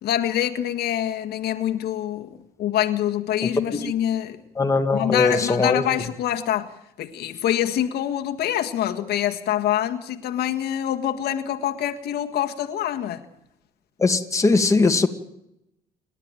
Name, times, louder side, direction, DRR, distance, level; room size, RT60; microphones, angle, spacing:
voice 1, 0.0-4.4 4.9-6.7 7.0-13.3, left 11 dB, 70° left, 1.7 m, -25 dB
voice 2, 4.6-5.8 14.0-15.1, left 3 dB, 20° left, 2.0 m, -20 dB
29.0 x 12.0 x 9.1 m
cardioid pair, 110°, 17 cm